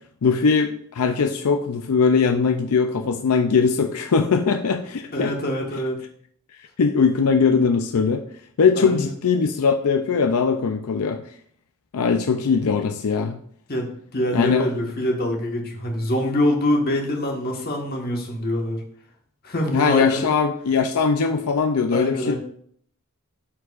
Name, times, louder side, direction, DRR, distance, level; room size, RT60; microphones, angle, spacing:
voice 1, 0.2-5.3 6.8-8.2 8.6-11.2 11.9-13.4 14.3-14.7 19.7-22.3, left 5 dB, 85° left, 5 dB, 0.5 m, -20 dB
voice 2, 5.1-6.0 8.8-9.1 13.7-18.8 19.4-20.3 21.9-22.3, left 1 dB, 45° left, 0 dB, 1.4 m, -25 dB
12.5 x 4.5 x 2.4 m, 0.62 s
head